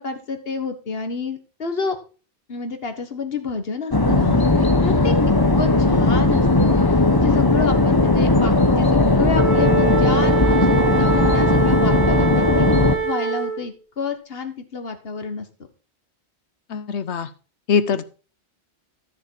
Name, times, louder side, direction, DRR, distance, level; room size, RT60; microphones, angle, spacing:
voice 1, 0.0-2.0 2.5-5.1 5.5-15.5, left 4 dB, 60° left, 7 dB, 1.7 m, -29 dB
sound 1, 3.9-13.0, left 2 dB, 20° left, 1.1 m, -17 dB
Wind instrument woodwind instrument, 9.3-13.7, right 6 dB, 45° right, 2.6 m, -24 dB
voice 2, 16.7-17.3 17.7-18.0, left 6 dB, 80° left, 14 dB, 1.2 m, -22 dB
13.0 x 6.7 x 4.7 m, 0.36 s
omnidirectional pair, 1.1 m